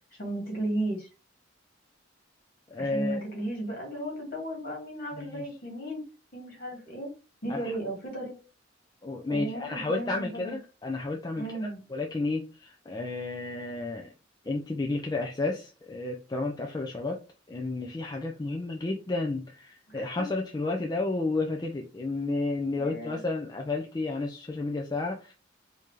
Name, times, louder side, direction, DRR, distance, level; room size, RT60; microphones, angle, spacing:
voice 1, 0.2-1.1 2.8-6.0 6.3-7.1 7.4-8.4 9.3-10.5 11.3-11.8 19.9-20.3 22.8-23.2, right 1 dB, 50° left, -1 dB, 1.9 m, -34 dB
voice 2, 2.7-3.2 5.1-5.5 7.5-7.7 9.0-14.1 14.5-17.2 17.5-25.3, left 2 dB, 20° left, 1 dB, 0.4 m, -32 dB
4.0 x 2.7 x 3.1 m, 0.32 s
head